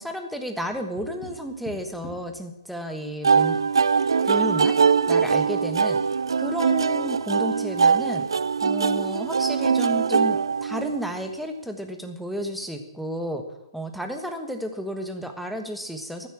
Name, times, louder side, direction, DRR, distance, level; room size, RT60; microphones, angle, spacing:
voice 1, 0.0-3.6 4.2-4.8 5.1-6.0 6.4-8.2 8.6-13.4 13.7-16.3, equal, ahead, 5 dB, 1.3 m, -32 dB
Tap, 0.7-2.4 4.4-5.1, left 1 dB, 25° left, 4.9 m, -44 dB
sound 1, 3.2-11.2, right 5 dB, 85° right, 0.4 m, -22 dB
15.0 x 8.2 x 7.3 m, 0.96 s
hypercardioid pair, 145°, 2 cm